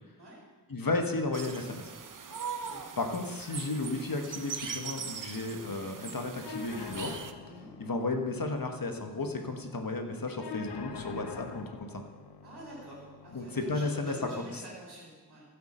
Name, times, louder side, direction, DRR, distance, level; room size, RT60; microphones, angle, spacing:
voice 1, 0.7-1.9 3.0-7.1 7.8-12.0 13.3-14.6, left 2 dB, 60° left, 4 dB, 1.4 m, -33 dB
sound 1, 1.3-7.3, right 6 dB, 55° right, 0.7 m, -41 dB
sound 2, 6.4-14.4, left 5 dB, 80° left, 0.8 m, -45 dB
voice 2, 12.4-15.4, equal, 85° right, -6 dB, 3.6 m, -47 dB
15.0 x 8.3 x 4.4 m, 1.3 s
wide cardioid pair, 65°, 39 cm